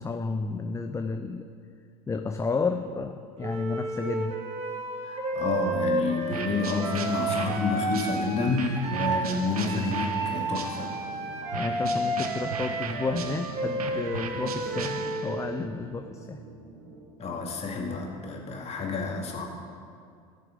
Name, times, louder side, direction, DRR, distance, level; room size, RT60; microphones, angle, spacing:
voice 1, 0.0-1.5 2.1-4.4 9.2-9.4 11.5-16.4, left 4 dB, 15° left, 6 dB, 0.5 m, -31 dB
Wind instrument woodwind instrument, 3.4-9.2 9.6-15.3, right 2 dB, 35° right, 2.3 m, -31 dB
voice 2, 5.0-10.9 17.2-19.5, left 3 dB, 35° left, 0 dB, 2.3 m, -29 dB
sound 1, 6.3-11.1 11.5-15.5, right 6 dB, 85° right, 0.8 m, -38 dB
sound 2, 9.5-17.0, right 3 dB, 70° right, 2.1 m, -45 dB
17.0 x 6.8 x 5.2 m, 2.3 s
hypercardioid pair, 80°, 19 cm